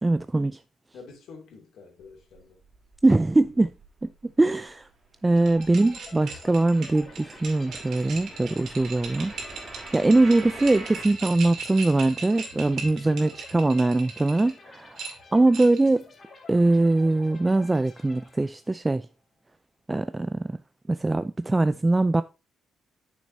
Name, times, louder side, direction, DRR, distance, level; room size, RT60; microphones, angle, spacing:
voice 1, 0.0-0.6 3.0-3.7 4.0-4.1 4.4-4.9 5.2-9.3 9.7-15.0 15.3-16.1 16.5-19.1 19.9-20.6 20.9-22.2, right 2 dB, 15° right, 0.3 m, -22 dB
voice 2, 0.9-2.6 13.0-13.3, left 4 dB, 75° left, 2.5 m, -48 dB
sound 1, 2.0-4.3 4.6-11.0, right 2 dB, 30° right, 2.9 m, -44 dB
sound 2, 5.3-18.9, left 3 dB, 45° left, 2.0 m, -51 dB
sound 3, 5.4-14.5 15.0-15.9, right 5 dB, 70° right, 2.2 m, -39 dB
8.5 x 6.4 x 2.7 m
cardioid pair, 90°, 0 cm